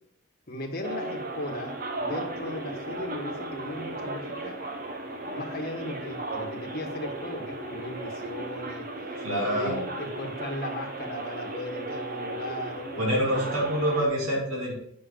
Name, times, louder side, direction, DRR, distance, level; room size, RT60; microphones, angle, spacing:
voice 1, 0.5-4.6 5.3-8.9 9.4-13.6, left 1 dB, 45° left, 1 dB, 1.3 m, -37 dB
sound 1, 0.8-14.1, right 2 dB, 40° right, 1.0 m, -36 dB
voice 2, 9.2-9.8 13.0-14.7, equal, 65° right, -3 dB, 2.6 m, -26 dB
8.7 x 6.2 x 3.8 m, 0.72 s
head